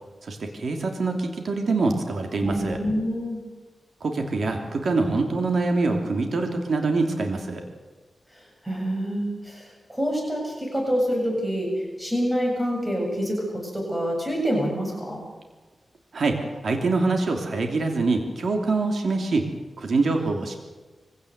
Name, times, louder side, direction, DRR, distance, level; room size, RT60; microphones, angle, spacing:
voice 1, 0.2-2.8 4.0-7.6 16.1-19.5 19.8-20.6, right 3 dB, 70° right, 4 dB, 3.0 m, -24 dB
voice 2, 2.4-3.4 8.3-15.2, equal, 10° right, 0 dB, 7.5 m, -27 dB
23.5 x 17.0 x 8.2 m, 1.2 s
cardioid pair, 75°, 0 cm